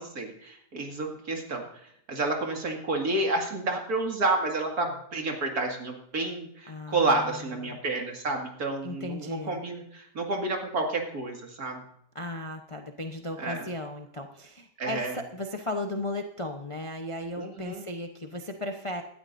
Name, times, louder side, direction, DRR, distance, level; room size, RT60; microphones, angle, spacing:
voice 1, 0.0-1.6 2.1-11.8 13.4-13.6 14.8-15.2 17.4-17.9, right 2 dB, 60° right, 2 dB, 2.6 m, -30 dB
voice 2, 6.6-7.8 8.8-9.6 12.1-19.0, left 1 dB, 25° left, 4 dB, 0.7 m, -36 dB
18.5 x 12.5 x 2.6 m, 0.71 s
omnidirectional pair, 1.8 m